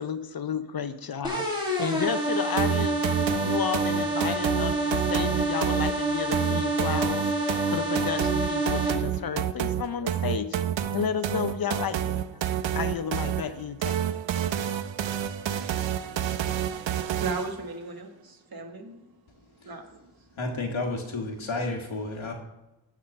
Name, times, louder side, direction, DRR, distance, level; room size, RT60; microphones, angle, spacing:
voice 1, 0.0-10.5 10.9-12.2 12.7-14.0, left 7 dB, 50° left, 11 dB, 0.6 m, -32 dB
sound 1, 1.2-8.9, right 1 dB, 10° right, 1.9 m, -27 dB
sound 2, 2.6-17.6, right 10 dB, 75° right, 0.6 m, -29 dB
voice 2, 16.0-19.1 19.6-20.0, right 3 dB, 50° right, 4 dB, 1.3 m, -38 dB
voice 3, 20.4-22.3, left 2 dB, 90° left, 2 dB, 1.6 m, -31 dB
9.6 x 3.8 x 6.8 m, 1.0 s
wide cardioid pair, 90°, 46 cm